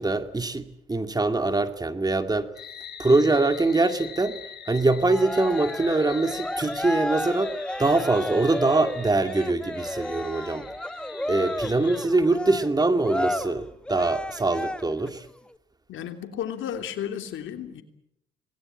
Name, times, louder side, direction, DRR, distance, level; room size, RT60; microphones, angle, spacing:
voice 1, 0.0-2.5 3.0-4.4 4.7-10.7 11.3-15.3, right 2 dB, 20° right, 8 dB, 2.2 m, -23 dB
sound 1, 2.5-12.0, left 8 dB, 55° left, 4.5 m, -43 dB
Cheering, 5.0-15.1, left 1 dB, 5° left, 1.1 m, -32 dB
voice 2, 15.9-17.8, left 9 dB, 80° left, 7 dB, 3.1 m, -33 dB
26.5 x 20.0 x 8.8 m, 0.77 s
cardioid pair, 90°, 20 cm